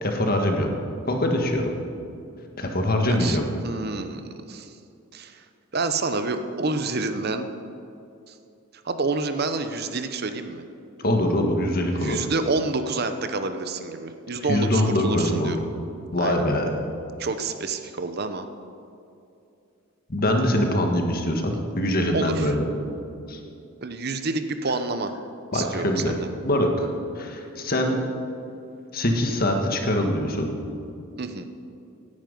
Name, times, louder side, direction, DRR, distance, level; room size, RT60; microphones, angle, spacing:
voice 1, 0.0-0.7 1.1-1.7 2.6-3.5 11.0-12.2 14.5-15.5 16.1-16.7 20.1-22.7 23.3-23.4 25.5-26.2 26.4-26.9 27.1-28.0 28.9-30.5, left 1 dB, 45° left, 3 dB, 1.6 m, -23 dB
voice 2, 3.1-4.7 5.1-5.4 5.7-7.5 8.3-8.4 8.8-10.6 11.9-15.6 16.2-16.4 17.2-18.5 22.1-22.5 23.8-25.1 25.5-26.3 31.2-31.4, right 3 dB, 45° right, 9 dB, 0.7 m, -28 dB
17.0 x 10.5 x 5.3 m, 2.6 s
head